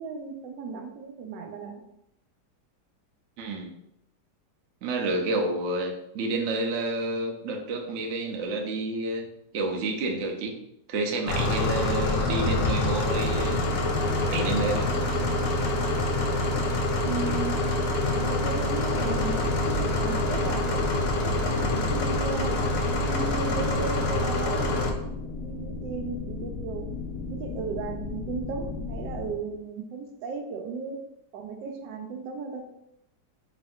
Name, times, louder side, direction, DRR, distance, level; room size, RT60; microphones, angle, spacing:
voice 1, 0.0-1.7 16.9-17.8 18.1-20.9 21.2-22.6 22.9-25.1 25.4-26.9 27.3-31.0 31.3-32.6, right 5 dB, 90° right, 4 dB, 1.3 m, -35 dB
voice 2, 3.4-3.7 4.8-9.3 9.5-10.5 10.9-13.6 14.3-14.9, right 2 dB, 70° right, 2 dB, 0.7 m, -29 dB
sound 1, 11.3-24.9, left 1 dB, 90° left, 1.3 m, -26 dB
sound 2, 18.9-29.3, left 4 dB, 70° left, 1.0 m, -35 dB
4.2 x 3.5 x 2.3 m, 0.80 s
omnidirectional pair, 1.9 m